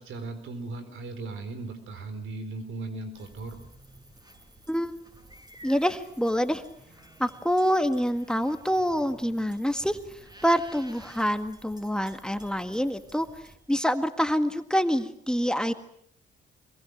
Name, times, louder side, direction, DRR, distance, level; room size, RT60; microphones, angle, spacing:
voice 1, 0.0-3.6, right 3 dB, 75° right, 10 dB, 4.2 m, -37 dB
sound 1, 3.1-13.6, right 1 dB, 20° right, 6.9 m, -52 dB
voice 2, 5.6-6.6 7.2-10.0 10.4-13.3 13.7-15.7, equal, 5° left, 8 dB, 1.8 m, -26 dB
24.0 x 22.0 x 8.0 m, 0.69 s
supercardioid pair, 60°, 20 cm